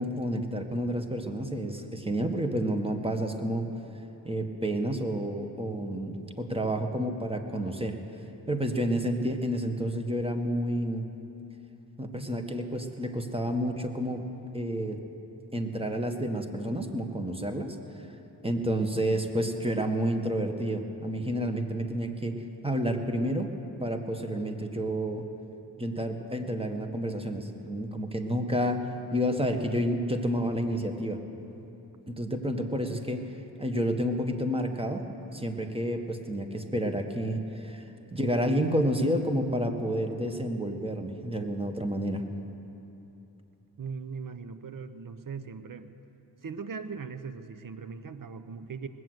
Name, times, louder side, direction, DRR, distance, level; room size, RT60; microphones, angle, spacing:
voice 1, 0.0-3.7 4.2-8.0 8.5-11.1 12.0-14.2 14.5-15.0 15.5-17.8 18.4-23.5 23.8-25.2 25.8-31.2 32.1-33.2 33.6-35.0 35.3-37.8 38.1-42.2, equal, 15° right, 5 dB, 1.5 m, -30 dB
voice 2, 43.8-45.9 46.4-48.9, right 5 dB, 50° right, 11 dB, 0.9 m, -39 dB
20.0 x 7.8 x 7.9 m, 2.9 s
cardioid pair, 45°, 41 cm